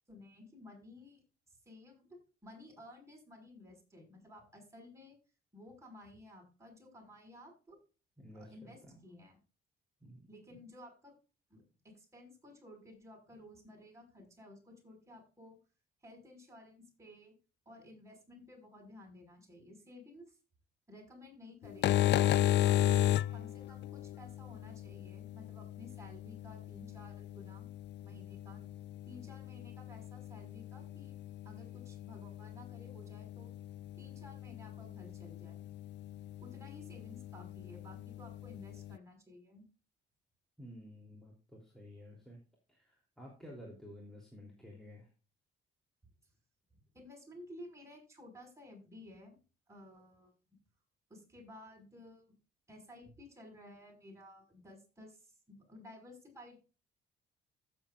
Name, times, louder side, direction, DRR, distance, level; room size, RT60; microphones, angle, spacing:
voice 1, 0.1-5.2 5.5-7.8 8.3-9.4 10.3-11.1 11.5-15.6 16.0-17.3 17.7-20.4 20.9-22.9 23.3-27.7 28.0-28.6 29.1-31.2 31.4-33.5 34.0-35.7 36.4-39.7 46.9-49.4 49.7-50.3 51.1-52.2 52.7-56.6, left 1 dB, 15° right, -1 dB, 5.7 m, -54 dB
voice 2, 8.2-9.0 10.0-10.6 40.6-42.4 42.7-45.1, equal, ahead, -2 dB, 3.3 m, -52 dB
sound 1, 21.6-39.0, left 12 dB, 60° left, 0.4 m, -36 dB
15.5 x 7.5 x 2.5 m, 0.33 s
cardioid pair, 90°, 20 cm